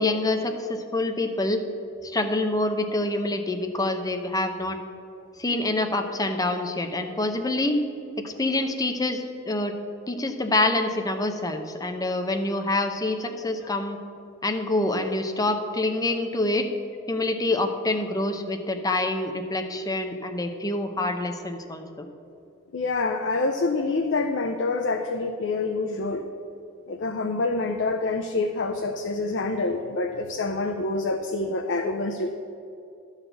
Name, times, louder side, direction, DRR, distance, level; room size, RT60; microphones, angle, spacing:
voice 1, 0.0-1.6 2.0-4.8 5.4-7.8 8.2-9.7 10.1-14.0 14.4-16.7 17.1-22.1, left 2 dB, 20° left, 5 dB, 0.7 m, -26 dB
voice 2, 22.7-26.2 26.9-32.3, left 3 dB, 60° left, 4 dB, 0.6 m, -26 dB
11.5 x 4.1 x 8.0 m, 2.6 s
head